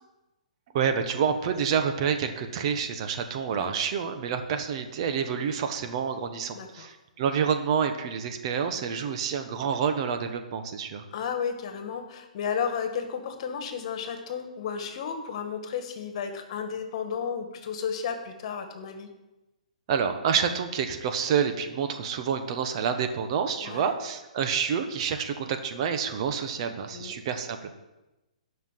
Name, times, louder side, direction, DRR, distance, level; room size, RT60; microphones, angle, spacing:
voice 1, 0.7-11.0 19.9-27.8, right 7 dB, 45° right, 7 dB, 1.2 m, -28 dB
voice 2, 6.5-6.9 11.1-19.1 23.6-23.9 26.9-27.1, left 7 dB, 50° left, 6 dB, 1.7 m, -33 dB
11.0 x 5.9 x 7.4 m, 1.0 s
hypercardioid pair, 125°, 4 cm